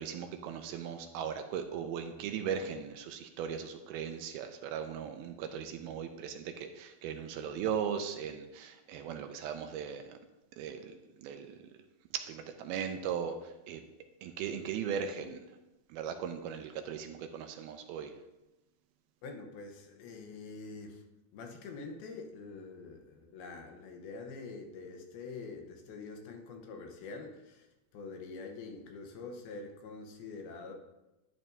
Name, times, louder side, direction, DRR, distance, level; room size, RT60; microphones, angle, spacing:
voice 1, 0.0-10.2 10.6-11.7 12.1-13.8 14.2-15.5 15.9-18.1, right 7 dB, 80° right, 6 dB, 2.4 m, -38 dB
voice 2, 19.2-21.0 21.3-27.7 27.9-30.7, left 4 dB, 75° left, 3 dB, 2.8 m, -45 dB
11.0 x 10.5 x 2.7 m, 0.99 s
omnidirectional pair, 4.6 m